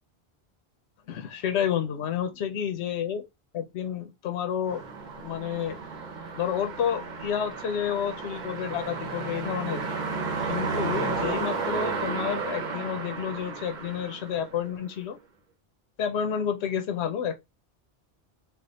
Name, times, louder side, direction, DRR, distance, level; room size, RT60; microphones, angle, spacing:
voice 1, 1.1-3.2 3.5-4.8 5.2-5.8 6.4-9.9 10.4-15.2 16.0-17.4, left 8 dB, 90° left, 0.9 m, -30 dB
sound 1, 4.7-14.9, right 4 dB, 50° right, 0.8 m, -33 dB
3.4 x 2.3 x 3.9 m
omnidirectional pair, 1.1 m